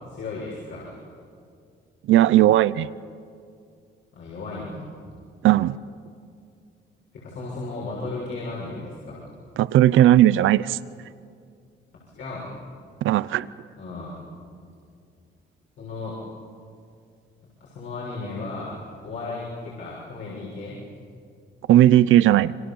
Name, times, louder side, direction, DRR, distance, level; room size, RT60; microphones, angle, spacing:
voice 1, 0.1-1.0 4.1-4.9 7.1-9.2 12.1-12.5 13.8-14.2 15.8-16.2 17.6-20.8, left 3 dB, 75° left, -6 dB, 6.8 m, -35 dB
voice 2, 2.1-2.9 5.4-5.8 9.6-10.8 13.0-13.5 21.7-22.5, right 13 dB, 80° right, 18 dB, 0.6 m, -16 dB
28.0 x 24.5 x 7.2 m, 2.3 s
cardioid pair, 90°, 20 cm